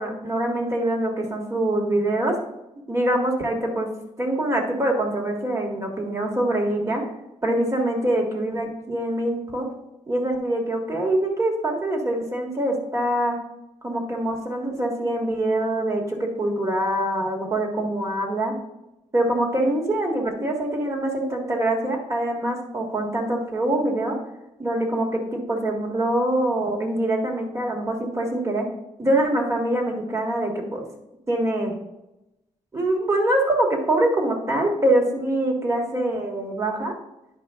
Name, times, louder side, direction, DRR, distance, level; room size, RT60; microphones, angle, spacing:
voice 1, 0.0-2.3 2.9-3.9 4.2-7.0 7.4-9.7 10.1-13.4 13.8-18.5 19.1-24.2 24.6-28.7 29.0-30.8 31.3-31.7 32.7-36.9, right 1 dB, 25° right, 1 dB, 1.7 m, -24 dB
10.0 x 5.1 x 3.6 m, 0.93 s
cardioid pair, 110°, 13 cm